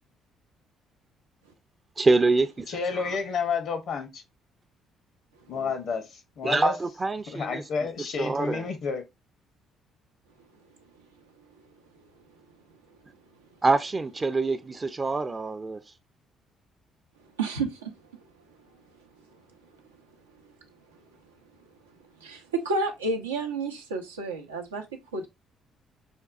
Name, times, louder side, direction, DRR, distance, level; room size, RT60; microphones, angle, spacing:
voice 1, 2.0-2.6 6.4-7.6 8.2-8.6 13.6-15.8, right 3 dB, 30° right, 0.4 m, -25 dB
voice 2, 2.7-4.2 5.5-6.8 7.3-9.0, left 5 dB, 60° left, 0.7 m, -30 dB
voice 3, 17.4-17.9 22.2-25.3, right 3 dB, 90° right, 0.5 m, -30 dB
5.2 x 2.2 x 2.4 m
hypercardioid pair, 50°, 0 cm